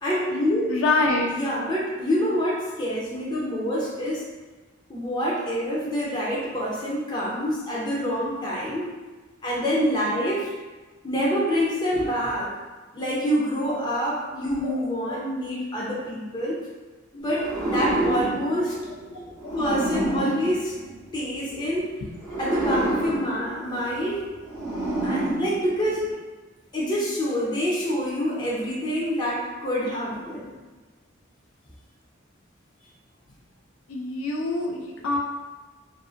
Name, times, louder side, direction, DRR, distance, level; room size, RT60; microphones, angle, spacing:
voice 1, 0.0-0.7 1.3-4.2 4.9-8.9 9.4-10.5 11.0-12.5 12.9-16.6 17.1-18.8 19.5-20.8 21.1-21.9 22.4-24.2 25.0-26.1 26.7-30.5, equal, 20° left, -5 dB, 0.6 m, -26 dB
voice 2, 0.7-1.3 14.6-14.7 19.4-19.5 22.0-22.1 33.9-35.2, left 2 dB, 75° left, 0 dB, 0.4 m, -25 dB
sound 1, 17.3-21.5 22.2-26.1, right 1 dB, ahead, 1.3 m, -29 dB
2.6 x 2.5 x 2.4 m, 1.3 s
head